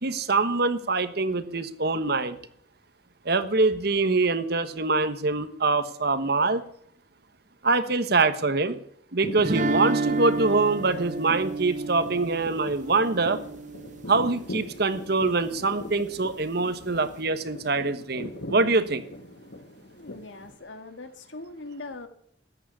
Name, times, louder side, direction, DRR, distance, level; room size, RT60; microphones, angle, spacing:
voice 1, 0.0-2.4 3.2-6.6 7.6-8.8 9.1-13.4 14.1-19.0, right 3 dB, 55° right, 11 dB, 1.3 m, -24 dB
sound 1, 9.2-20.6, left 1 dB, 65° left, 1.5 m, -41 dB
sound 2, 9.4-14.4, right 3 dB, 40° right, 0.7 m, -30 dB
voice 2, 20.0-22.1, left 2 dB, 80° left, 8 dB, 1.9 m, -41 dB
14.0 x 9.3 x 9.8 m, 0.65 s
head